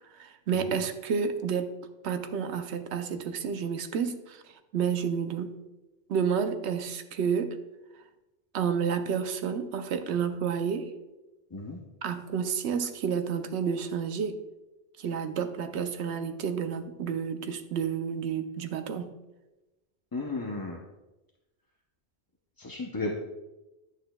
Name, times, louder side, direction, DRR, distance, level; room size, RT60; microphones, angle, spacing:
voice 1, 0.1-1.8 2.0-4.4 4.7-5.5 6.1-7.6 8.5-10.9 12.0-14.4 15.0-19.1, right 7 dB, 80° right, 9 dB, 0.9 m, -30 dB
voice 2, 20.1-20.8 22.6-23.1, left 3 dB, 25° left, -1 dB, 0.5 m, -34 dB
10.5 x 6.4 x 2.2 m, 1.0 s
omnidirectional pair, 1.1 m